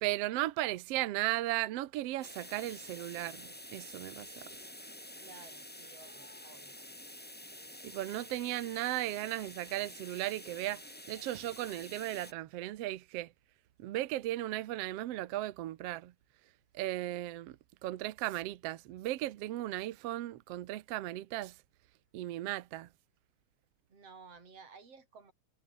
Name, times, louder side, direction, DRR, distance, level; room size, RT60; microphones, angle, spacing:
voice 1, 0.0-4.4 7.8-10.8 11.1-13.3 13.8-16.1 16.7-17.5 17.8-21.5 22.1-22.9, right 15 dB, 75° right, 1.5 m, -36 dB
sound 1, 2.2-12.3, left 1 dB, 5° left, 1.3 m, -49 dB
voice 2, 5.2-6.8 23.9-25.3, right 5 dB, 45° right, 6.8 m, -55 dB
omnidirectional pair, 3.9 m